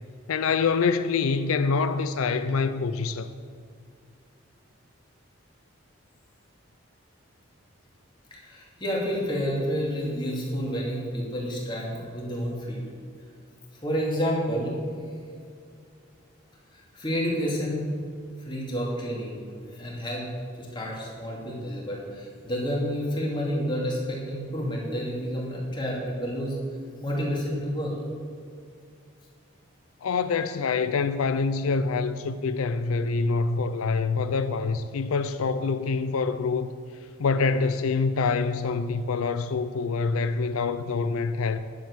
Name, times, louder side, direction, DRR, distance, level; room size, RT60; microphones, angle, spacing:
voice 1, 0.3-3.3 30.0-36.7 37.2-41.6, left 4 dB, 90° left, 0.5 m, -25 dB
voice 2, 8.3-12.8 13.8-14.8 16.7-17.9 18.4-19.4 19.7-20.2 20.6-26.6 27.0-27.9, equal, 20° left, 2.6 m, -29 dB
11.0 x 7.5 x 7.3 m
head